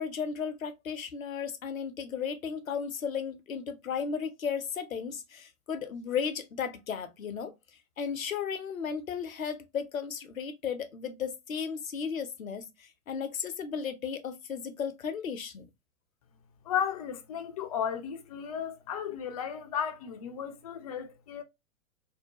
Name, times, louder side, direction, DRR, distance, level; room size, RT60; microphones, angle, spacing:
voice 1, 0.0-7.5 8.0-15.7, left 6 dB, 80° left, 0.6 m, -35 dB
voice 2, 16.6-21.4, left 8 dB, 30° left, 0.4 m, -34 dB
2.7 x 2.2 x 2.7 m
figure-of-eight pair, 100°, 41 cm